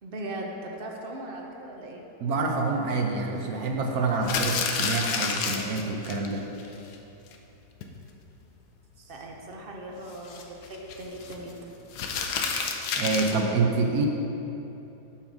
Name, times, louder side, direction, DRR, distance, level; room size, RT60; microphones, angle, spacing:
voice 1, 0.0-2.0 9.0-11.7, right 1 dB, 50° right, 0 dB, 0.6 m, -39 dB
voice 2, 2.2-6.4 12.9-14.1, right 3 dB, 70° right, 1 dB, 1.1 m, -27 dB
sound 1, 4.2-6.3 6.6-6.7 6.9-7.0 7.3-7.4 7.8-8.1 10.1-11.3 11.9-13.4, left 5 dB, 75° left, 1.2 m, -29 dB
8.6 x 3.8 x 6.0 m, 3.0 s
omnidirectional pair, 1.8 m